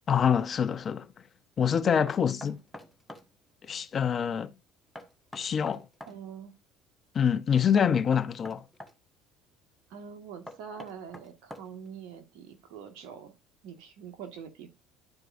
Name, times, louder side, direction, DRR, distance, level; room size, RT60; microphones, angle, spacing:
voice 1, 0.1-1.1 1.6-2.6 3.6-4.5 5.3-5.9 7.1-8.6, left 7 dB, 40° left, 0.7 m, -26 dB
Knock, 2.1-3.3 5.0-6.2 7.8-9.0 10.5-11.9, left 1 dB, 5° left, 1.3 m, -45 dB
voice 2, 6.0-6.5 9.9-13.3 13.6-14.7, right 7 dB, 70° right, 1.7 m, -44 dB
11.5 x 4.7 x 2.6 m
hypercardioid pair, 70°, 0 cm